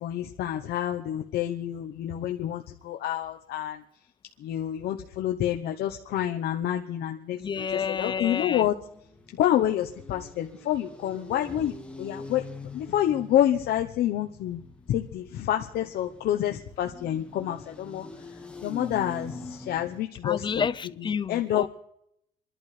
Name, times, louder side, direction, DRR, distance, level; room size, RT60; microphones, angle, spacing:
voice 1, 0.0-3.8 4.4-7.4 7.7-8.7 9.3-12.4 12.7-14.6 14.9-20.7 21.0-21.7, left 11 dB, 70° left, 0.9 m, -28 dB
voice 2, 7.3-8.7 20.2-21.7, left 6 dB, 30° left, 0.5 m, -30 dB
sound 1, 8.1-20.0, left 2 dB, 5° left, 1.6 m, -44 dB
27.5 x 11.5 x 3.3 m
cardioid pair, 110°, 17 cm